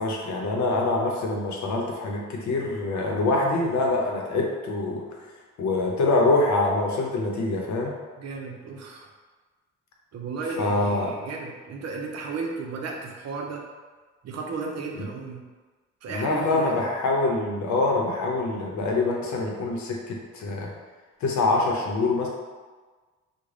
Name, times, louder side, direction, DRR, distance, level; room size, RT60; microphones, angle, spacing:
voice 1, 0.0-5.0 5.6-7.9 10.6-11.1 15.0-15.1 16.1-20.7 21.2-22.3, left 2 dB, 70° left, -1 dB, 0.7 m, -25 dB
voice 2, 8.2-9.1 10.1-13.6 14.2-15.4 16.0-16.9, right 4 dB, 55° right, 1 dB, 0.6 m, -34 dB
3.2 x 2.2 x 3.7 m, 1.4 s
cardioid pair, 90°, 30 cm